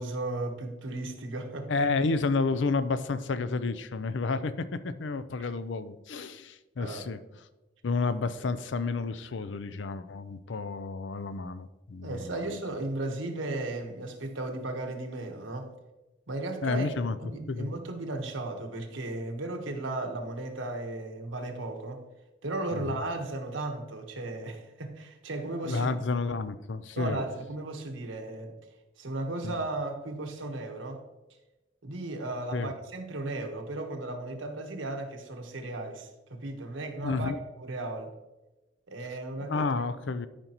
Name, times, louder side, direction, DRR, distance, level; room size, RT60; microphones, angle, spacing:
voice 1, 0.0-1.7 5.4-5.5 6.8-7.0 12.0-15.7 16.3-16.9 17.2-22.0 22.4-25.9 27.0-28.5 29.0-31.0 31.8-37.3 37.6-38.1 38.9-39.7, right 2 dB, 90° right, 3 dB, 1.3 m, -35 dB
voice 2, 1.7-7.2 7.8-12.4 16.6-17.2 17.5-17.8 22.7-23.0 25.6-27.2 29.4-29.5 32.5-32.7 37.0-37.4 39.4-40.3, left 4 dB, 70° left, 13 dB, 0.5 m, -30 dB
13.0 x 5.2 x 3.0 m, 1.0 s
head